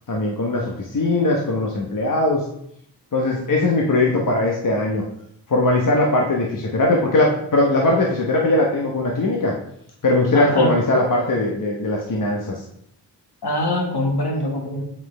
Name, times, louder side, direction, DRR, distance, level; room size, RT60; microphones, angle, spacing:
voice 1, 0.1-2.4 3.1-5.0 5.5-9.5 10.0-12.6, left 2 dB, 50° left, -1 dB, 1.1 m, -20 dB
voice 2, 10.3-10.8 13.4-14.8, left 1 dB, 65° left, 1 dB, 1.8 m, -23 dB
7.5 x 5.9 x 3.4 m, 0.74 s
wide cardioid pair, 90°, 42 cm